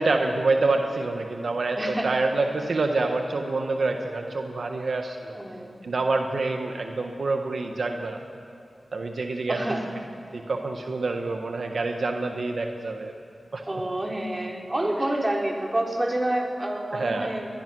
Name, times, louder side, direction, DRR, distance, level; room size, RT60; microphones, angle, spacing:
voice 1, 0.0-5.4 5.8-8.2 8.9-9.6 10.3-13.1 13.5-13.6 16.9-17.3, right 3 dB, 75° right, 4 dB, 1.4 m, -27 dB
voice 2, 1.8-2.1 5.3-5.7 9.5-9.9 13.7-17.5, right 1 dB, 25° right, 0 dB, 3.5 m, -28 dB
22.5 x 20.5 x 6.3 m, 2.8 s
wide cardioid pair, 65°, 0 cm